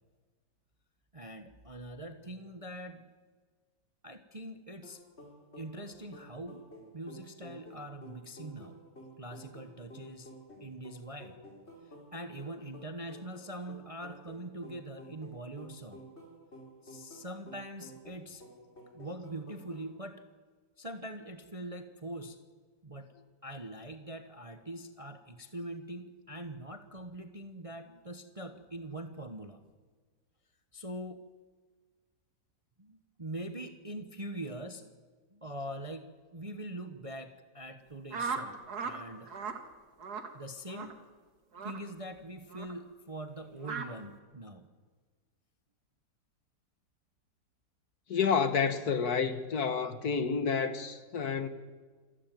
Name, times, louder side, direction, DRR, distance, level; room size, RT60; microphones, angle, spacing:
voice 1, 1.1-3.0 4.0-5.0 5.6-6.6 6.9-8.8 9.2-10.3 10.6-11.4 11.8-16.1 16.8-18.4 18.9-20.2 20.8-22.4 22.8-23.1 23.4-29.6 30.7-31.2 32.8-34.9 35.3-36.1 36.3-39.4 40.3-41.0 41.6-44.7, right 1 dB, 25° right, 0.9 m, -43 dB
sound 1, 4.8-19.9, equal, 35° left, 4.2 m, -52 dB
sound 2, 38.1-39.0 39.3-39.6 40.0-40.3 40.7-40.9 41.5-41.8 42.5-42.7 43.6-43.9, right 5 dB, 55° right, 2.3 m, -37 dB
voice 2, 48.1-51.5, left 6 dB, 55° left, 1.7 m, -29 dB
27.5 x 13.0 x 9.3 m
omnidirectional pair, 2.0 m